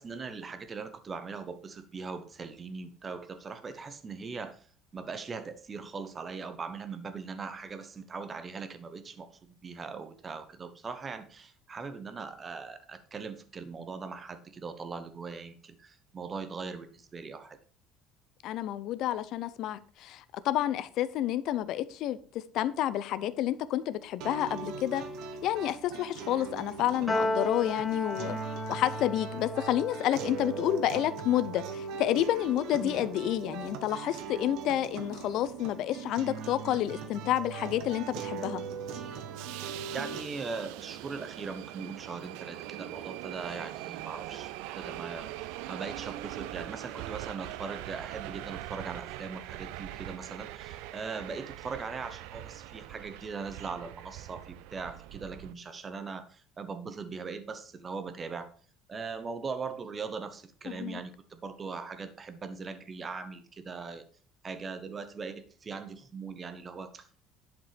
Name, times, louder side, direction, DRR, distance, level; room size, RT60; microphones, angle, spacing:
voice 1, 0.0-4.7 4.9-17.6 32.8-33.0 39.9-58.5 58.9-64.0 64.4-67.2, right 4 dB, 20° right, 10 dB, 0.9 m, -40 dB
voice 2, 18.4-25.0 25.4-28.4 28.7-38.6 60.7-61.0, left 12 dB, 55° left, 14 dB, 0.7 m, -30 dB
sound 1, 24.2-40.2, right 6 dB, 60° right, 1.5 m, -40 dB
Piano, 27.1-33.6, left 1 dB, 5° left, 1.7 m, -37 dB
Subway metro underground, 37.6-55.5, right 15 dB, 85° right, 0.5 m, -42 dB
11.0 x 5.3 x 5.1 m, 0.41 s
cardioid pair, 165°, 0 cm